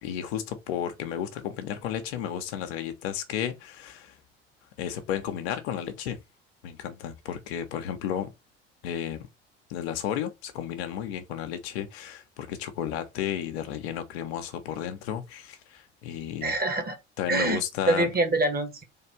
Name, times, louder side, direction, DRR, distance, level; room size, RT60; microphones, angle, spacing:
voice 1, 0.0-4.2 4.8-6.2 6.6-8.3 8.8-9.3 9.7-16.5 17.2-18.1, left 9 dB, 65° left, 1.0 m, -33 dB
voice 2, 16.4-17.0 17.3-17.6 17.9-18.8, right 2 dB, 25° right, 1.5 m, -25 dB
3.6 x 3.4 x 4.3 m
figure-of-eight pair, 60°, 34 cm